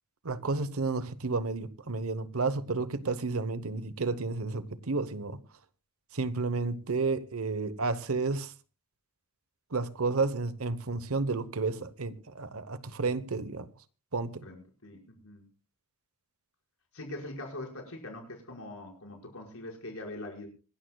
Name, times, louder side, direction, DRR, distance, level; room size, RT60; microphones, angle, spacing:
voice 1, 0.2-5.4 6.1-8.5 9.7-13.7 14.1-14.5, right 3 dB, 75° right, 1.0 m, -31 dB
voice 2, 14.4-15.4 16.9-20.5, left 1 dB, 70° left, 5.4 m, -42 dB
26.0 x 13.0 x 2.3 m
head